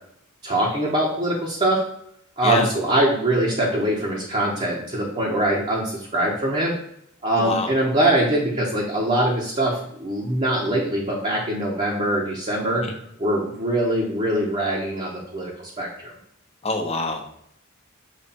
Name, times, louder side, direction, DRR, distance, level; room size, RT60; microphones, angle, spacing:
voice 1, 0.4-1.8 2.4-6.7 7.2-12.8 13.2-16.1, right 1 dB, 30° right, -4 dB, 1.1 m, -23 dB
voice 2, 7.3-7.7 12.8-13.0 16.6-17.4, left 2 dB, 30° left, 3 dB, 1.0 m, -26 dB
7.1 x 3.3 x 4.3 m, 0.72 s
head